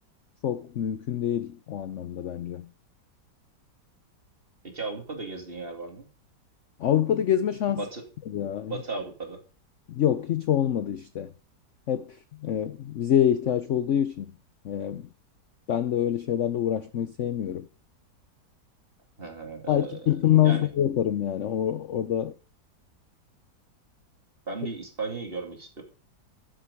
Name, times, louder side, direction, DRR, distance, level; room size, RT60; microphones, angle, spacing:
voice 1, 0.4-2.7 6.8-7.8 8.3-8.7 9.9-11.3 11.9-14.3 14.6-15.1 15.7-17.7 19.7-22.3, left 10 dB, 60° left, 0.8 m, -26 dB
voice 2, 4.7-6.1 7.7-8.1 8.7-9.4 19.2-20.1 20.4-20.7 24.5-25.8, right 3 dB, 30° right, 2.6 m, -35 dB
12.0 x 7.7 x 5.2 m
omnidirectional pair, 1.9 m